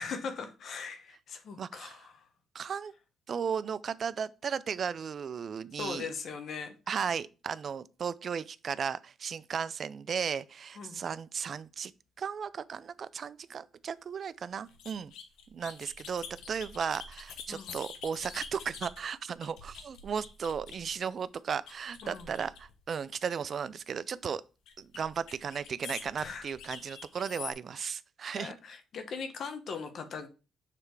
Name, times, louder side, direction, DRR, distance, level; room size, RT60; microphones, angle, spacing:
voice 1, 0.0-2.3 5.8-6.7 10.8-11.0 17.5-17.8 22.0-22.3 26.2-26.5 28.4-30.3, left 5 dB, 60° left, 1.0 m, -40 dB
voice 2, 1.6-2.0 2.5-2.9 3.3-6.1 6.9-11.9 12.2-15.1 15.5-24.4 24.8-28.5, right 7 dB, 50° right, 0.4 m, -35 dB
sound 1, 14.7-21.1 21.7-22.9 24.7-27.5, left 6 dB, 90° left, 1.1 m, -46 dB
6.8 x 3.3 x 4.6 m
cardioid pair, 90°, 0 cm